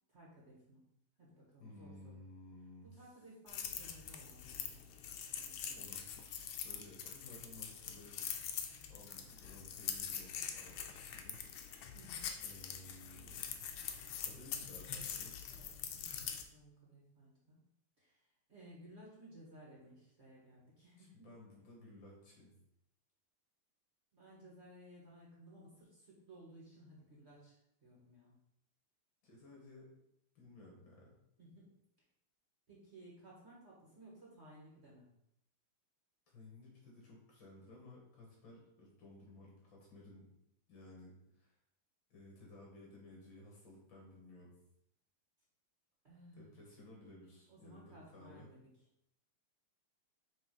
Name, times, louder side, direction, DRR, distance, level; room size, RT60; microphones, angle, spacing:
voice 1, 0.1-0.8 1.2-2.2 2.8-4.8 5.3-5.8 11.9-12.3 15.5-17.7 18.0-21.3 24.1-28.4 31.4-31.7 32.7-35.1 46.0-46.6 47.5-48.7, right 1 dB, 35° right, -5 dB, 1.8 m, -58 dB
voice 2, 1.6-2.9 5.8-8.2 8.9-11.9 12.4-13.6 14.2-15.3 21.0-22.5 29.2-29.9 30.3-31.1 36.3-40.3 40.7-41.5 42.1-44.5 46.4-48.5, left 2 dB, 65° left, -2 dB, 2.6 m, -56 dB
sound 1, 3.5-16.4, left 8 dB, 80° left, 1.5 m, -44 dB
5.9 x 3.5 x 5.4 m, 0.78 s
omnidirectional pair, 2.3 m